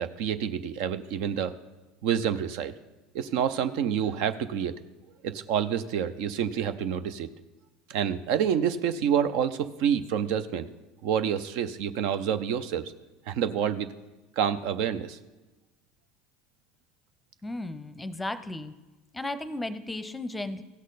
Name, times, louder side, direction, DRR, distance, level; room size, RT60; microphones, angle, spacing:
voice 1, 0.0-1.6 2.0-2.7 3.1-4.8 5.2-7.3 7.9-10.7 11.0-12.9 13.3-13.9 14.4-15.2, right 8 dB, 65° right, 12 dB, 0.5 m, -28 dB
voice 2, 17.4-18.7 19.1-20.6, left 2 dB, 10° left, 13 dB, 0.7 m, -34 dB
16.0 x 6.3 x 4.0 m, 1.1 s
hypercardioid pair, 75°, 0 cm